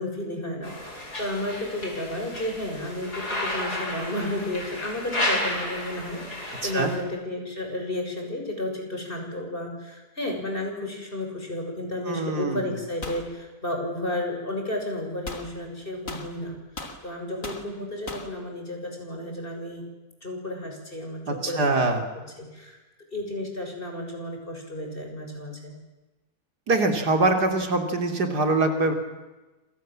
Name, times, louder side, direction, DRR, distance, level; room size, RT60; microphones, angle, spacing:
voice 1, 0.0-16.6 17.0-19.9 20.2-21.8 22.2-22.8 23.1-25.8, left 1 dB, 35° left, 2 dB, 7.1 m, -32 dB
sound 1, 0.6-7.0, left 1 dB, 85° left, 6.2 m, -32 dB
voice 2, 6.6-6.9 12.1-12.7 21.3-22.0 26.7-28.9, right 2 dB, 90° right, 5 dB, 3.7 m, -23 dB
sound 2, 13.0-13.3 15.3-15.5 16.1-17.0 17.4-17.7 18.1-18.3, left 2 dB, 55° left, 3.5 m, -37 dB
27.5 x 27.5 x 7.7 m, 1.1 s
omnidirectional pair, 1.7 m